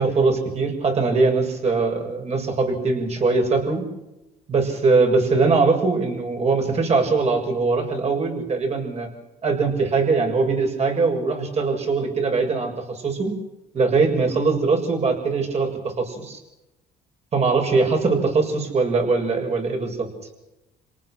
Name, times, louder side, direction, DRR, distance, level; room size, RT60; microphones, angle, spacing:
voice 1, 0.0-3.8 4.5-9.1 9.4-13.3 13.7-16.4 17.3-20.1, right 4 dB, 40° right, 3 dB, 7.1 m, -21 dB
29.0 x 18.5 x 6.3 m, 0.96 s
cardioid pair, 110°, 17 cm